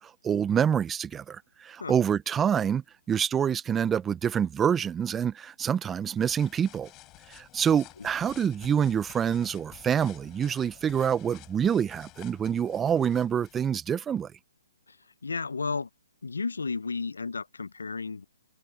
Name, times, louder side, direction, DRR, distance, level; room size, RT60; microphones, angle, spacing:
voice 1, 0.0-6.9 7.3-14.3, right 8 dB, 15° right, 0.7 m, -26 dB
sound 1, 5.9-13.7, left 19 dB, 25° left, 5.1 m, -52 dB
voice 2, 15.2-15.9 16.2-18.3, left 4 dB, 85° left, 0.7 m, -33 dB
hypercardioid pair, 135°, 0 cm